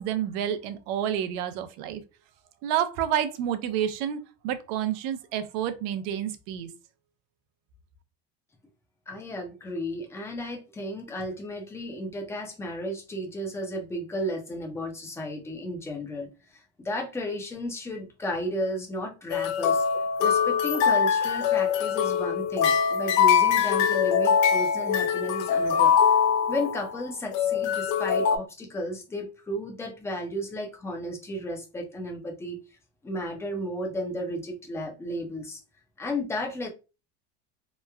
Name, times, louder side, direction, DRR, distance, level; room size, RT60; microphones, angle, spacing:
voice 1, 0.0-2.0 2.6-6.7, right 10 dB, 70° right, 0.5 m, -29 dB
voice 2, 9.1-19.8 20.2-25.9 26.5-32.6 33.0-35.6 36.0-36.7, equal, 10° left, 0.5 m, -33 dB
sound 1, 19.3-27.0 27.3-28.4, left 7 dB, 75° left, 0.5 m, -23 dB
3.0 x 2.2 x 2.2 m
cardioid pair, 145°, 31 cm